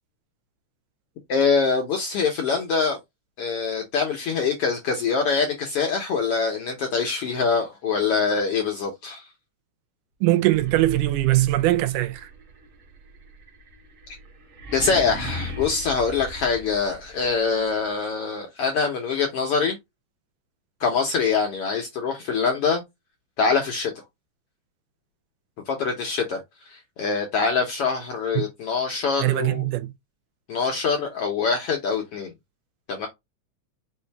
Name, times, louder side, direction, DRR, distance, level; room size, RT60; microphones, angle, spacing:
voice 1, 1.3-3.0 3.4-9.2 14.7-19.8 20.8-22.8 23.4-23.9 25.7-26.4 26.7-29.6 30.5-32.3 32.9-33.1, left 5 dB, 70° left, 1.4 m, -24 dB
voice 2, 10.2-12.3 28.4-28.5 29.2-29.9, right 16 dB, 90° right, 2.2 m, -21 dB
sound 1, 10.4-17.3, equal, 55° right, 1.7 m, -38 dB
5.5 x 2.6 x 3.3 m
omnidirectional pair, 3.6 m